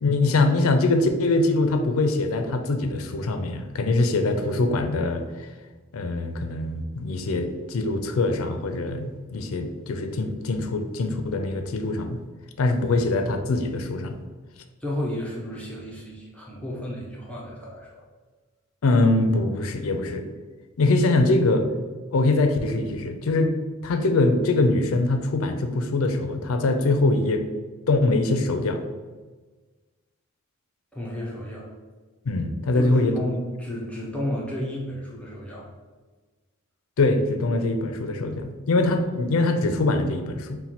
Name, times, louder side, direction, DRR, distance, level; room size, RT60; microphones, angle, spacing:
voice 1, 0.0-5.2 5.9-12.2 12.6-14.2 18.8-20.2 20.8-21.6 22.1-23.5 23.8-27.4 27.9-28.8 32.3-33.2 37.0-40.6, left 2 dB, 70° left, 6 dB, 0.4 m, -23 dB
voice 2, 14.8-18.0 30.9-31.7 32.7-35.7, left 1 dB, 5° left, -4 dB, 0.5 m, -32 dB
4.3 x 2.2 x 4.1 m, 1.3 s
head